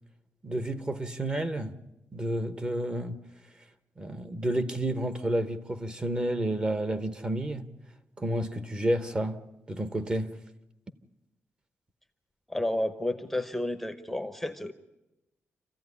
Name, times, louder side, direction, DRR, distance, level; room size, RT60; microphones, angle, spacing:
voice 1, 0.4-1.8 2.1-3.3 4.0-7.7 8.2-10.4, right 1 dB, 20° right, 1.0 m, -30 dB
voice 2, 12.5-14.7, left 1 dB, 5° left, 0.8 m, -31 dB
27.5 x 15.0 x 9.7 m
wide cardioid pair, 160°, 5 cm